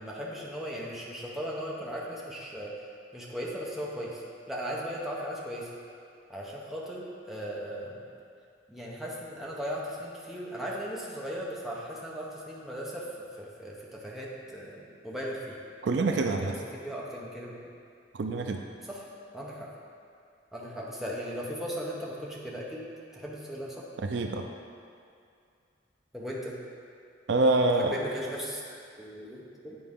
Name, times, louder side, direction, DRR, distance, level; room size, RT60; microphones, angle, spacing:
voice 1, 0.0-2.7 3.1-4.2 4.5-5.7 6.3-8.0 8.7-15.6 16.1-17.5 18.9-19.0 19.3-19.7 20.5-22.9 23.1-23.8 26.1-26.6 27.8-29.8, equal, ahead, -5 dB, 0.8 m, -37 dB
voice 2, 15.8-16.5 18.1-18.6 24.0-24.4 27.3-28.0, right 2 dB, 60° right, 4 dB, 0.4 m, -26 dB
8.6 x 4.6 x 3.6 m, 2.4 s
head